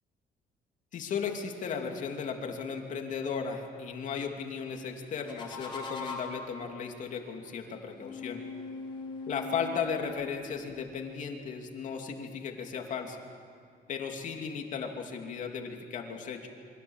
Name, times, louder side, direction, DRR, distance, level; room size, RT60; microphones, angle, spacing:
voice 1, 0.9-8.4 9.3-13.2 13.9-16.5, left 6 dB, 50° left, 3 dB, 2.8 m, -36 dB
sound 1, 5.0-6.5 7.9-10.8, left 3 dB, 30° left, 4.6 m, -41 dB
28.0 x 24.0 x 7.3 m, 2.2 s
cardioid pair, 160°, 16 cm